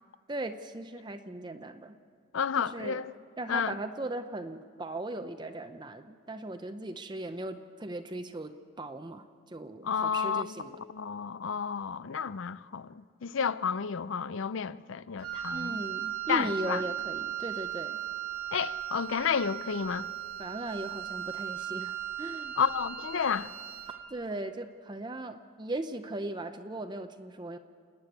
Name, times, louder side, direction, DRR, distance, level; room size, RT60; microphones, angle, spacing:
voice 1, 0.3-2.0 2.6-3.0 3.4-10.8 15.5-18.0 20.4-22.6 24.1-27.6, right 2 dB, 20° right, 0.6 m, -38 dB
voice 2, 2.3-3.1 3.5-3.8 9.8-15.8 16.3-16.8 18.5-20.1 22.6-23.5, left 6 dB, 65° left, 0.5 m, -31 dB
Wind instrument woodwind instrument, 15.2-24.1, right 11 dB, 85° right, 1.7 m, -37 dB
29.0 x 9.8 x 9.2 m
head